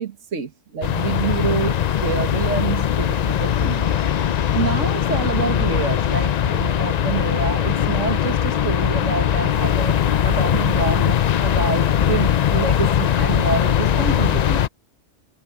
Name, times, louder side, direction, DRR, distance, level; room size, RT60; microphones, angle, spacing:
voice 1, 0.0-3.9 4.3-14.6, right 6 dB, 75° right, 1.9 m, -27 dB
sound 1, 0.8-14.7, left 9 dB, 65° left, 0.4 m, -20 dB
omnidirectional pair, 1.3 m